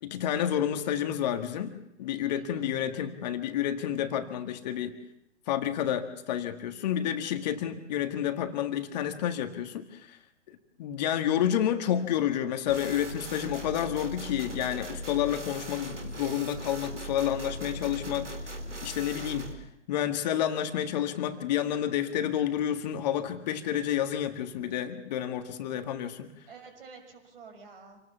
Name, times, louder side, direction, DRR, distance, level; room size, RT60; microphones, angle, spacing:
voice 1, 0.0-5.0 5.5-10.2 10.5-18.3 18.8-19.5 19.9-26.3, left 10 dB, 35° left, 7 dB, 1.8 m, -30 dB
voice 2, 2.3-2.6 7.9-8.2 11.0-11.1 26.5-28.0, right 5 dB, 55° right, 6 dB, 6.4 m, -50 dB
sound 1, 12.7-19.5, right 1 dB, 85° right, 3.7 m, -39 dB
27.5 x 19.0 x 7.3 m, 0.81 s
figure-of-eight pair, 125°, 35 cm